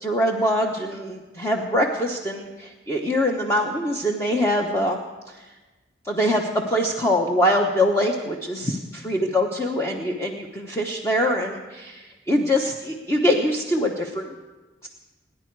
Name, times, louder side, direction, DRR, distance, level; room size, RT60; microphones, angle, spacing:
voice 1, 0.0-5.0 5.3-5.4 6.0-14.3 14.8-14.9, left 1 dB, 15° left, 0 dB, 1.0 m, -23 dB
27.0 x 10.5 x 4.7 m, 1.2 s
head